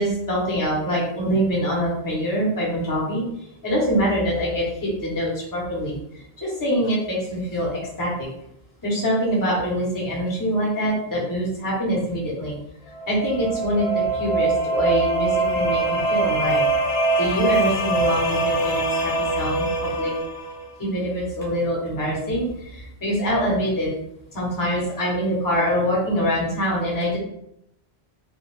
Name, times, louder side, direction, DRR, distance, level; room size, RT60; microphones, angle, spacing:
voice 1, 0.0-3.2 3.6-5.9 6.4-8.3 8.8-12.6 13.1-16.6 17.2-20.1 20.8-23.9 24.3-27.2, equal, 20° left, -5 dB, 0.7 m, -24 dB
sound 1, 12.9-20.6, right 2 dB, 80° left, 0.9 m, -23 dB
2.3 x 2.2 x 3.1 m, 0.79 s
omnidirectional pair, 1.0 m